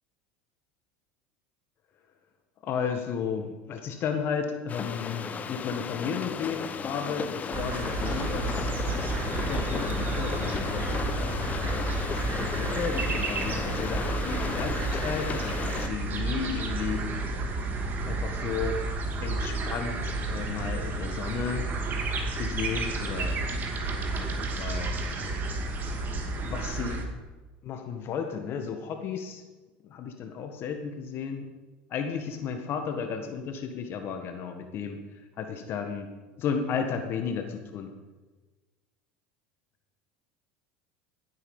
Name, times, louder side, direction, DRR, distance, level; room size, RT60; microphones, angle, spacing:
voice 1, 2.6-8.7 9.4-17.1 18.1-18.8 19.2-21.6 22.4-23.4 24.0-24.9 26.4-27.1 27.6-29.4 29.8-31.5 31.9-36.1 36.4-37.9, left 6 dB, 50° left, 6 dB, 1.6 m, -34 dB
sound 1, 4.7-15.9, left 6 dB, 30° left, 0.9 m, -34 dB
sound 2, 7.5-27.1, right 3 dB, 40° right, 2.3 m, -31 dB
15.5 x 8.5 x 5.6 m, 1.3 s
hypercardioid pair, 90°, 5 cm